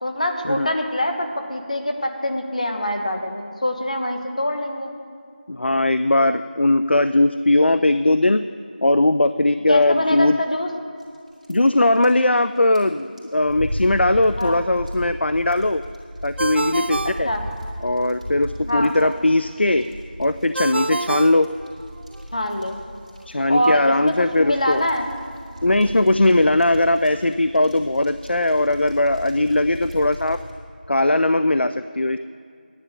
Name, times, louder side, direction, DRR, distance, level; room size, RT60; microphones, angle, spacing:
voice 1, 0.0-4.9 9.7-10.7 14.4-14.6 17.2-17.4 18.7-18.9 22.3-22.8 23.5-25.1, left 1 dB, 40° left, 4 dB, 1.1 m, -24 dB
voice 2, 5.5-8.5 8.8-10.4 11.5-15.8 16.2-17.3 17.8-19.8 20.2-21.5 23.3-24.8 25.6-30.4 30.9-32.2, left 2 dB, 85° left, 11 dB, 0.4 m, -19 dB
sound 1, 11.0-30.5, equal, 40° right, 2.9 m, -42 dB
sound 2, 13.4-18.5, equal, 20° right, 2.3 m, -31 dB
Ringtone, 16.4-18.1 20.6-22.2, right 2 dB, 80° right, 0.3 m, -28 dB
10.0 x 9.9 x 6.6 m, 2.2 s
figure-of-eight pair, 175°, 6 cm